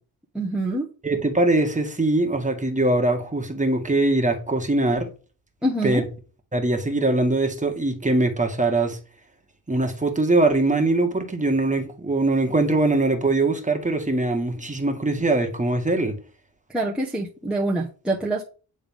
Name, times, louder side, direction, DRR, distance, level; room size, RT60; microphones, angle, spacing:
voice 1, 0.3-0.9 5.6-6.0 16.7-18.4, right 1 dB, ahead, 1.1 m, -25 dB
voice 2, 1.0-5.1 5.8-6.0 6.5-9.0 9.7-16.1, right 2 dB, 20° right, 1.6 m, -22 dB
9.1 x 3.6 x 3.6 m
cardioid pair, 75°, 39 cm